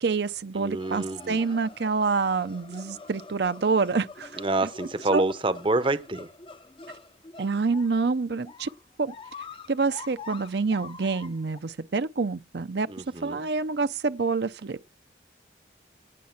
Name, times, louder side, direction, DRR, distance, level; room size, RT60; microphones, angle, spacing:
voice 1, 0.0-4.3 5.1-5.2 7.4-8.7 9.0-9.1 9.7-12.9 13.2-14.8, right 4 dB, 70° right, 0.6 m, -27 dB
voice 2, 0.6-1.5 4.4-6.3 12.9-13.5, right 2 dB, 30° right, 0.7 m, -27 dB
sound 1, 0.8-11.6, left 4 dB, 30° left, 0.6 m, -45 dB
18.0 x 7.4 x 5.8 m
head